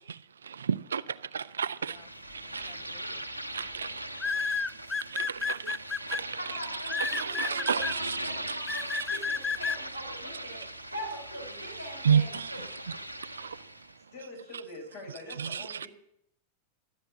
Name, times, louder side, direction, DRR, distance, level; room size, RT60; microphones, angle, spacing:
voice 1, 0.4-2.0 2.3-2.9 3.5-4.0 5.0-6.4 7.0-8.2 9.1-9.2 12.0-12.6 13.2-13.6 15.4-15.9, right 7 dB, 70° right, 0.4 m, -31 dB
sound 1, 1.7-14.0, right 1 dB, 90° right, 0.9 m, -40 dB
sound 2, 2.7-3.0 4.2-6.2 6.9-7.9 8.7-9.8, left 5 dB, 15° left, 0.5 m, -31 dB
voice 2, 6.4-12.9, right 1 dB, 90° left, 5.0 m, -42 dB
voice 3, 14.1-15.9, left 1 dB, 55° left, 6.1 m, -44 dB
13.0 x 9.0 x 7.4 m
figure-of-eight pair, 90°, 0 cm